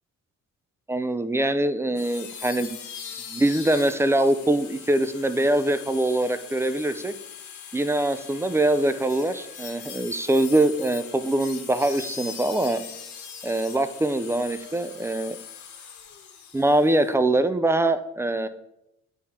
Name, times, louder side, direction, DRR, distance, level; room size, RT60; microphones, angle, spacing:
voice 1, 0.9-2.8 3.3-7.1 7.7-12.8 13.4-15.4 16.5-18.5, right 1 dB, 10° right, 11 dB, 0.4 m, -23 dB
sound 1, 1.9-17.1, left 7 dB, 75° left, 1.1 m, -41 dB
8.2 x 3.6 x 4.2 m, 0.86 s
cardioid pair, 90°, 30 cm